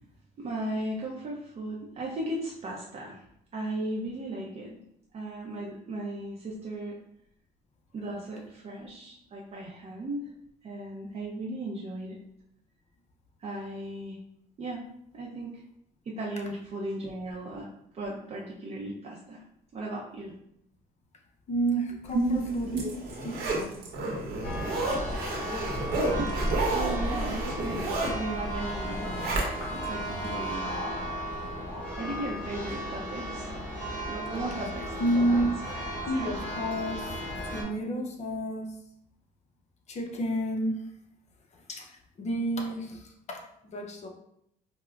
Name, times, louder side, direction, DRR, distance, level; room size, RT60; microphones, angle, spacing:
voice 1, 0.4-3.2 3.5-4.8 5.1-7.0 7.9-10.3 10.6-12.2 13.4-14.2 14.6-14.8 15.1-15.6 16.1-17.7 17.9-19.4 19.7-20.3 22.1-22.4 22.7-22.8 26.2-30.8 32.0-33.5 34.1-36.3, right 2 dB, 40° right, -3 dB, 0.5 m, -36 dB
voice 2, 21.5-22.8 23.2-23.7 33.8-34.0 35.0-35.5 36.1-37.2 37.5-38.8 39.9-40.9 41.5-44.1, right 1 dB, 40° left, 1 dB, 0.6 m, -30 dB
Zipper (clothing), 22.3-29.9 30.3-30.4, right 2 dB, 70° right, 0.9 m, -32 dB
Church bell, 24.4-37.6, equal, 10° left, 1.4 m, -34 dB
4.4 x 2.0 x 2.4 m, 0.74 s
cardioid pair, 110°, 17 cm